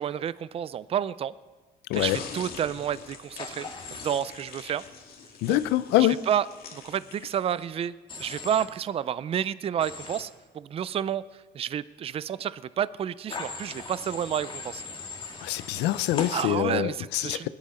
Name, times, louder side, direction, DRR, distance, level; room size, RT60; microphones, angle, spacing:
voice 1, 0.0-1.3 1.9-3.7 4.0-4.8 5.5-5.6 6.0-6.5 6.7-10.3 10.5-11.2 11.5-14.8 16.3-17.5, right 9 dB, 35° right, 17 dB, 0.4 m, -30 dB
sound 1, 1.9-7.8, left 6 dB, 65° left, 2.0 m, -44 dB
Human voice / Train, 3.4-4.2 8.1-8.6 9.8-10.2 13.3-16.4, left 4 dB, 30° left, 2.0 m, -38 dB
voice 2, 5.4-6.2 15.4-17.5, left 15 dB, 85° left, 15 dB, 0.6 m, -25 dB
20.5 x 10.5 x 4.3 m, 1.3 s
cardioid pair, 110°, 17 cm